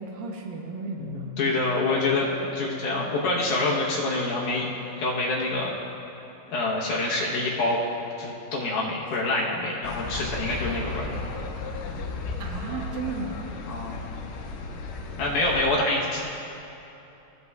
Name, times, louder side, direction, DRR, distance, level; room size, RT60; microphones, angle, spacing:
voice 1, 0.0-1.7 2.1-2.3 12.4-13.5, right 4 dB, 75° right, 1 dB, 2.5 m, -35 dB
voice 2, 1.0-2.2 2.6-4.7 5.0-5.7 6.5-7.8 8.2-11.1 13.7-14.0 15.2-16.2, left 2 dB, 70° left, -4 dB, 2.3 m, -26 dB
sound 1, 9.8-15.7, left 3 dB, 85° left, 2.5 m, -34 dB
16.5 x 8.0 x 2.3 m, 3.0 s
omnidirectional pair, 4.2 m